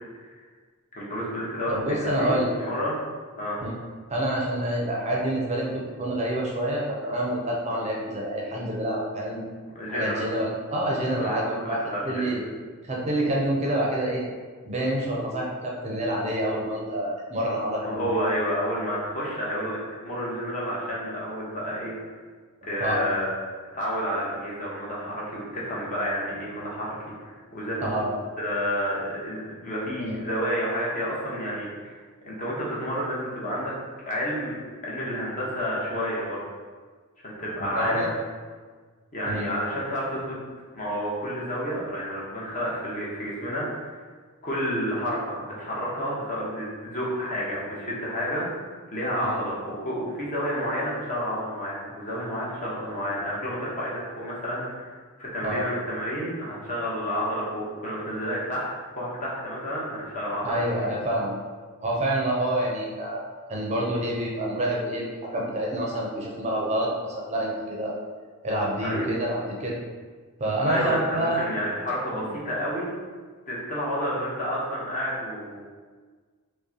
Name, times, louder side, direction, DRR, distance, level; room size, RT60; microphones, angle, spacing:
voice 1, 0.9-2.3 2.6-3.0 3.4-3.6 9.7-10.2 11.2-12.3 17.8-21.9 22.7-23.3 23.7-28.0 28.4-32.0 32.2-33.7 34.1-34.6 34.8-36.4 37.2-38.1 39.1-40.4 40.7-44.0 44.4-48.5 48.9-58.7 59.0-60.9 68.8-69.1 70.7-72.9 73.5-75.6, equal, 35° left, -6 dB, 0.9 m, -30 dB
voice 2, 1.7-2.5 3.6-3.7 4.1-9.4 9.9-11.8 12.0-12.4 12.9-14.2 14.6-18.3 22.8-23.1 27.8-28.1 30.0-30.3 37.6-38.1 39.2-39.5 49.2-49.4 55.4-55.7 60.4-61.4 61.8-63.2 63.5-68.0 68.4-69.8 70.4-71.4, right 1 dB, 30° right, -3 dB, 0.6 m, -27 dB
5.0 x 2.1 x 2.7 m, 1.5 s
head